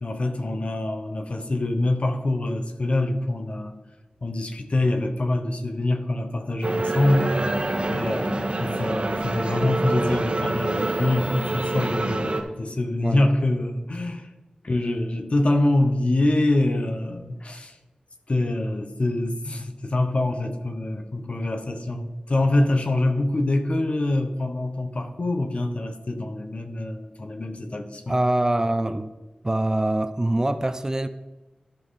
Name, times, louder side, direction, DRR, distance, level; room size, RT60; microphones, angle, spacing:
voice 1, 0.0-3.8 4.2-7.3 7.9-14.3 14.6-17.8 18.3-28.2, left 2 dB, 50° left, 1.1 m, -25 dB
sound 1, 6.6-12.4, right 2 dB, 50° right, 1.3 m, -26 dB
voice 2, 28.1-29.1 29.4-31.1, right 1 dB, 25° right, 0.5 m, -24 dB
13.5 x 5.5 x 4.1 m
wide cardioid pair, 70°, 3 cm